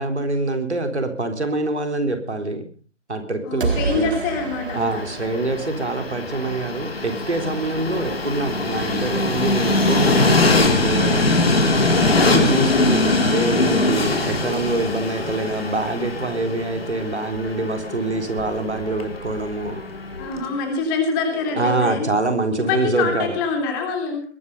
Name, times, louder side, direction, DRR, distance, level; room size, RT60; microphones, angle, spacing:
voice 1, 0.0-2.7 3.1-4.1 4.7-11.4 12.1-19.8 21.5-23.4, right 2 dB, 70° right, 6 dB, 3.9 m, -25 dB
voice 2, 3.4-5.0 11.9-12.2 20.2-22.1 22.7-24.2, left 4 dB, 15° left, 4 dB, 3.3 m, -25 dB
sound 1, 3.6-6.5, right 4 dB, 50° right, 1.7 m, -29 dB
Train, 4.4-20.5, left 2 dB, 55° left, 3.7 m, -22 dB
21.5 x 10.5 x 5.5 m, 0.41 s
figure-of-eight pair, 150°, 36 cm